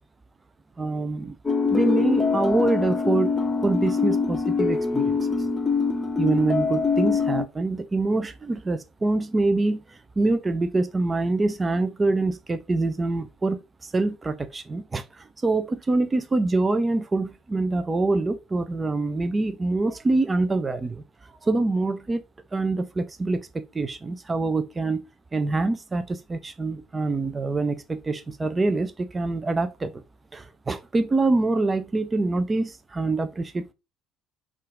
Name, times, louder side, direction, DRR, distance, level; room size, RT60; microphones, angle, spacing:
voice 1, 0.8-1.3 1.7-3.3 3.6-5.2 6.2-22.2 22.5-25.1 25.3-30.0 30.3-33.7, right 2 dB, 20° right, 0.5 m, -25 dB
sound 1, 1.5-7.5, left 5 dB, 20° left, 0.8 m, -24 dB
5.6 x 2.5 x 3.6 m
figure-of-eight pair, 55°, 0 cm